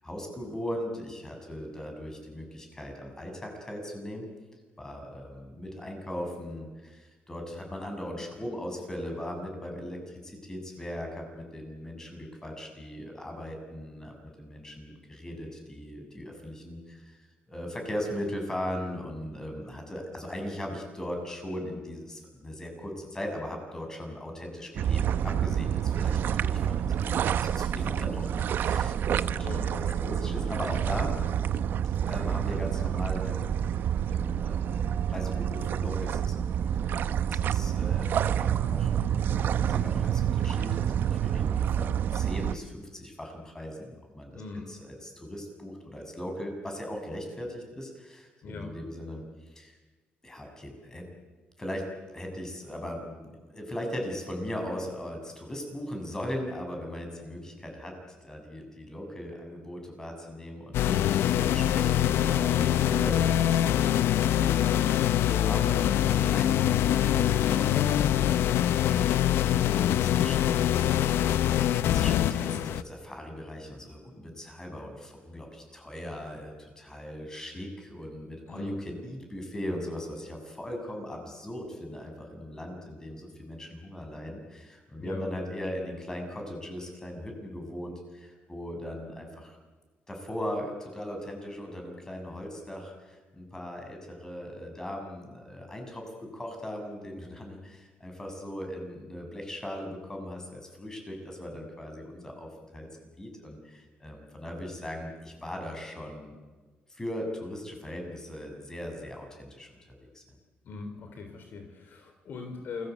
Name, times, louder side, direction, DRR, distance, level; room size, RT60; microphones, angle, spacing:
voice 1, 0.0-4.3 4.8-31.1 32.1-33.6 34.1-44.4 44.7-49.8 50.2-51.1 51.6-51.9 52.1-61.0 61.4-64.9 65.3-70.8 71.4-89.6 90.1-102.9 103.2-106.3 106.9-109.7 110.1-110.2, left 1 dB, 15° left, 3 dB, 7.3 m, -39 dB
sound 1, 24.8-42.6, right 9 dB, 60° right, 0.9 m, -28 dB
voice 2, 44.3-44.7 48.4-48.7 60.8-61.1 78.5-78.8 85.0-85.3 110.6-112.9, left 4 dB, 55° left, 5 dB, 3.6 m, -40 dB
sound 2, 60.7-72.8, left 11 dB, 80° left, 0.7 m, -24 dB
28.5 x 21.0 x 8.4 m, 1.3 s
cardioid pair, 130°, 4 cm